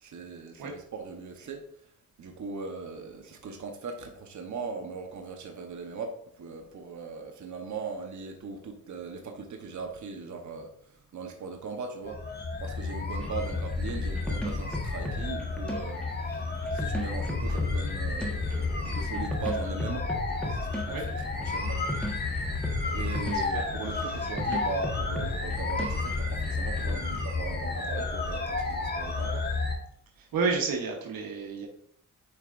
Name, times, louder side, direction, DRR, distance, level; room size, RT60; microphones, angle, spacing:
voice 1, 0.0-1.7 2.2-12.2 12.6-16.0 16.3-16.4 16.7-21.0 21.4-21.8 22.8-29.5, right 4 dB, 55° right, 3 dB, 1.0 m, -39 dB
sound 1, 12.0-29.8, left 3 dB, 30° left, 1.3 m, -31 dB
sound 2, 13.2-26.9, left 1 dB, 5° left, 1.3 m, -38 dB
voice 2, 23.3-23.6 30.2-31.7, right 4 dB, 90° right, 1 dB, 1.1 m, -31 dB
9.0 x 4.5 x 2.5 m, 0.67 s
cardioid pair, 80°, 34 cm